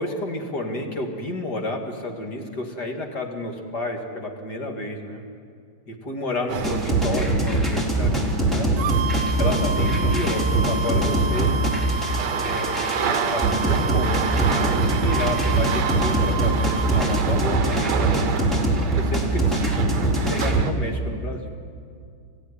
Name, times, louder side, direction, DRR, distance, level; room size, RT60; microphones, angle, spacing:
voice 1, 0.0-5.2 5.9-8.8 9.4-11.6 12.4-12.8 13.3-18.5 18.9-21.5, left 2 dB, 55° left, 2 dB, 2.7 m, -31 dB
sound 1, 6.5-20.7, right 6 dB, 60° right, 1.6 m, -31 dB
sound 2, 6.6-20.6, right 2 dB, ahead, 3.5 m, -22 dB
sound 3, 8.8-17.4, right 4 dB, 80° right, 1.6 m, -30 dB
25.5 x 16.0 x 9.9 m, 2.3 s
omnidirectional pair, 2.2 m